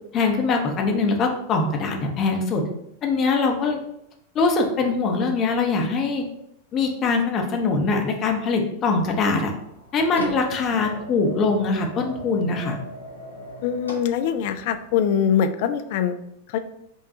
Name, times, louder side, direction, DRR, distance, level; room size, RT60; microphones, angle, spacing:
voice 1, 0.1-2.6 3.0-3.8 4.3-6.2 6.7-9.5 9.9-12.8, left 4 dB, 30° left, 2 dB, 0.7 m, -22 dB
sound 1, 9.0-15.0, left 1 dB, 80° left, 0.8 m, -39 dB
voice 2, 13.6-16.2 16.5-16.6, left 8 dB, 50° left, 9 dB, 0.3 m, -23 dB
5.4 x 2.3 x 2.8 m, 0.78 s
figure-of-eight pair, 90°, 0 cm